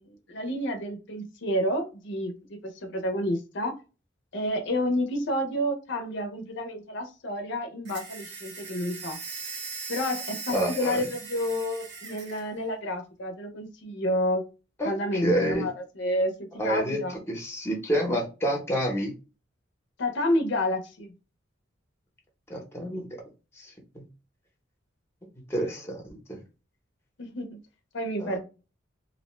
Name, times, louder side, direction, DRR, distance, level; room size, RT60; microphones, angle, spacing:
voice 1, 0.0-3.7 4.3-9.2 9.9-14.4 14.8-16.3 16.6-17.1 20.0-21.1 27.2-27.6 27.9-28.4, left 1 dB, 65° left, 4 dB, 0.6 m, -29 dB
sound 1, 7.8-12.5, right 4 dB, 60° right, 0.9 m, -39 dB
voice 2, 10.5-11.0 14.8-15.7 16.6-17.0 17.3-19.1 22.5-23.1 23.6-24.0 25.5-26.4 28.2-28.4, right 1 dB, 15° left, 1 dB, 0.8 m, -28 dB
2.6 x 2.1 x 3.0 m, 0.31 s
head